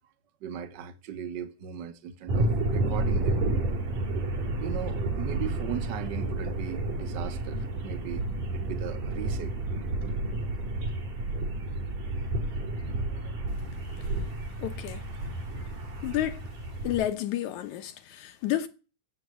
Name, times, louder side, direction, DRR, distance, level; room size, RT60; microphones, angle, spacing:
voice 1, 0.4-3.4 4.6-9.6 12.1-12.6 13.0-13.5, right 9 dB, 55° right, 1.2 m, -39 dB
sound 1, 2.3-17.1, right 2 dB, 80° right, 4.8 m, -31 dB
voice 2, 14.6-15.0 16.0-16.4 16.8-18.7, left 13 dB, 70° left, 2.3 m, -30 dB
14.0 x 8.3 x 9.1 m
omnidirectional pair, 3.6 m